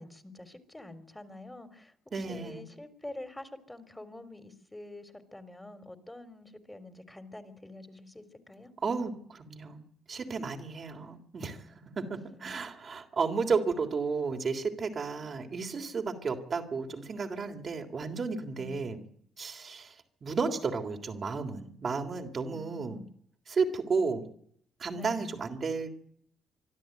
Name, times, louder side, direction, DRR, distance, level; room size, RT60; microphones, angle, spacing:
voice 1, 0.0-8.7 12.1-12.5 18.6-19.0 22.5-23.1 24.9-25.3, left 1 dB, 10° left, 10 dB, 3.8 m, -47 dB
voice 2, 2.1-2.6 8.8-9.8 10.1-11.7 12.0-19.0 19.4-19.9 20.2-23.0 23.5-24.2 24.8-25.9, right 4 dB, 50° right, 4 dB, 3.4 m, -33 dB
24.5 x 12.5 x 9.3 m, 0.66 s
hypercardioid pair, 55°, 0 cm